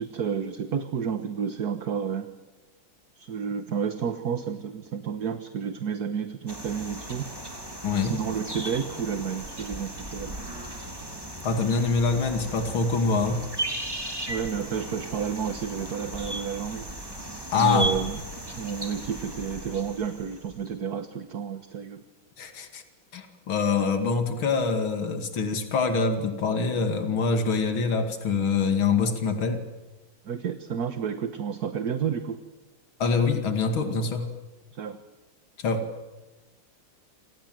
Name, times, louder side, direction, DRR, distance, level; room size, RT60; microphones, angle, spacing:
voice 1, 0.0-2.3 3.2-7.3 8.0-10.6 14.3-16.9 17.5-18.2 18.6-22.0 30.3-32.4 34.7-35.0, right 7 dB, 50° right, 8 dB, 1.7 m, -31 dB
sound 1, 6.5-20.7, right 1 dB, 10° right, 3.2 m, -36 dB
voice 2, 7.8-8.2 11.4-13.4 17.5-17.9 22.4-22.8 23.1-29.6 33.0-34.3 35.6-35.8, left 4 dB, 75° left, 5 dB, 3.1 m, -25 dB
28.5 x 26.5 x 7.8 m, 1.1 s
omnidirectional pair, 2.3 m